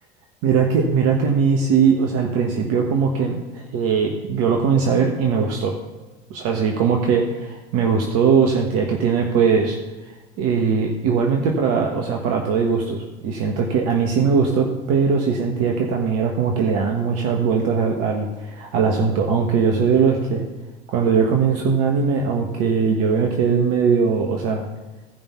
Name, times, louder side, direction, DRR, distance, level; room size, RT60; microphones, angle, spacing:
voice 1, 0.4-5.7 6.3-9.8 10.4-20.4 20.9-24.7, right 6 dB, 55° right, 1 dB, 1.3 m, -20 dB
15.5 x 5.4 x 5.7 m, 1.1 s
hypercardioid pair, 70°, 29 cm